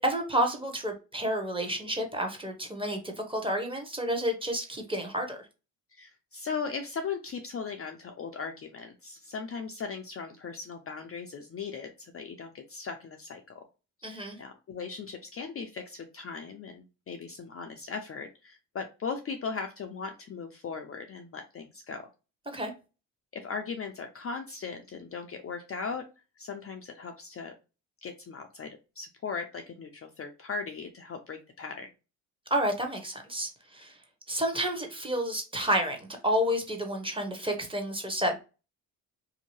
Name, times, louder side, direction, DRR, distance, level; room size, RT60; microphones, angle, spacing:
voice 1, 0.0-5.4 14.0-14.4 22.5-22.7 32.5-33.9 34.3-36.0 36.2-38.4, equal, 10° right, 0.9 m, -30 dB
voice 2, 5.9-13.6 14.0-22.1 23.3-26.0 26.4-27.5 28.0-31.9, left 5 dB, 35° left, 0.5 m, -38 dB
2.7 x 2.1 x 3.0 m
supercardioid pair, 60°, 42 cm